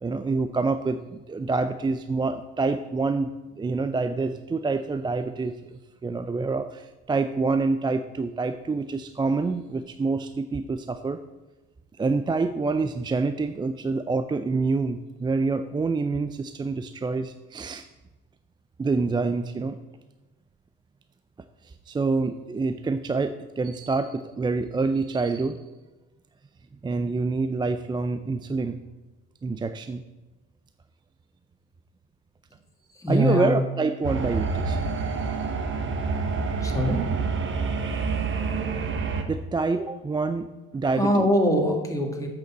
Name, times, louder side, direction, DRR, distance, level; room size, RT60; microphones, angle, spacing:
voice 1, 0.0-3.3 3.6-11.2 12.0-17.9 18.8-19.8 21.6-25.6 26.8-28.8 29.4-30.0 33.1-34.8 39.3-40.5 40.7-41.3, right 3 dB, 15° right, 10 dB, 0.4 m, -27 dB
voice 2, 32.9-33.6 36.6-37.1 41.0-42.3, equal, 10° left, 1 dB, 2.2 m, -23 dB
sound 1, 34.0-39.2, right 4 dB, 40° right, 1.3 m, -27 dB
8.3 x 6.7 x 7.4 m, 1.1 s
cardioid pair, 105°, 31 cm